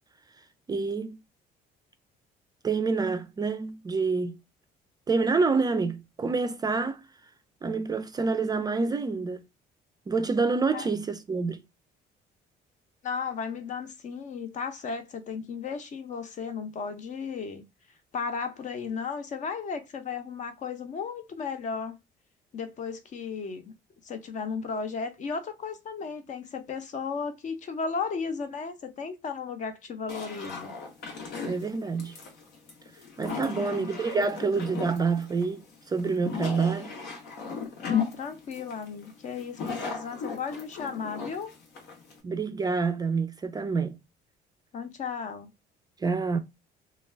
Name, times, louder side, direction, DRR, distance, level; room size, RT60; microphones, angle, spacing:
voice 1, 0.7-1.2 2.6-4.3 5.1-7.0 7.6-9.4 10.1-11.6 31.4-32.1 33.2-35.6 35.9-36.9 42.2-44.0 46.0-46.4, right 4 dB, 25° right, 0.3 m, -27 dB
voice 2, 13.0-17.6 18.1-22.0 22.5-23.7 24.0-30.7 33.4-33.9 37.8-41.5 44.7-45.5, left 5 dB, 45° left, 0.6 m, -35 dB
sound 1, 30.1-42.2, left 6 dB, 75° left, 1.0 m, -36 dB
2.3 x 2.3 x 3.2 m
cardioid pair, 110°, 17 cm